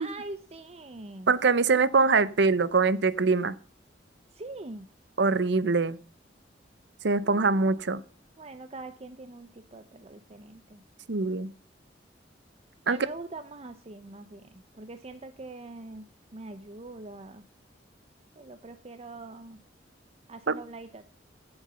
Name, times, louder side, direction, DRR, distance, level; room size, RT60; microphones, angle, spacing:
voice 1, 0.0-1.3 4.3-4.9 7.2-8.0 8.4-10.8 12.9-16.1 16.3-17.4 18.3-19.6 20.3-21.0, right 2 dB, 35° right, 9 dB, 0.7 m, -43 dB
voice 2, 1.3-3.6 5.2-6.0 7.0-8.0 11.1-11.5 12.9-13.0 20.5-20.6, right 4 dB, 65° right, 17 dB, 0.8 m, -23 dB
14.5 x 8.0 x 5.6 m, 0.39 s
head